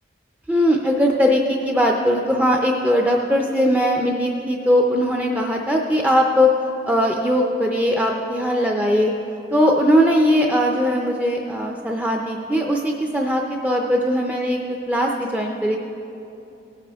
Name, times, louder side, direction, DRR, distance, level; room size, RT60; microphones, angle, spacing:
voice 1, 0.5-6.5 6.9-9.1 9.5-14.6 14.9-15.8, equal, 10° right, 0 dB, 0.5 m, -19 dB
17.5 x 9.3 x 3.5 m, 2.8 s
head